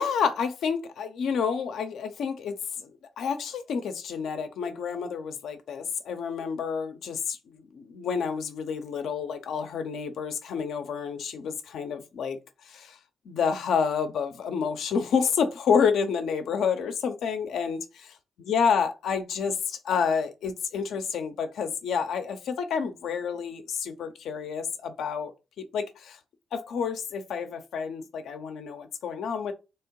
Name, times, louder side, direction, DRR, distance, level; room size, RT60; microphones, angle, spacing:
voice 1, 0.0-2.5 2.8-2.9 3.2-12.4 12.7-13.0 13.3-18.1 18.4-25.3 25.6-26.2 26.5-29.5, left 6 dB, 80° left, 0.7 m, -29 dB
3.5 x 3.1 x 4.6 m
supercardioid pair, 55°, 0 cm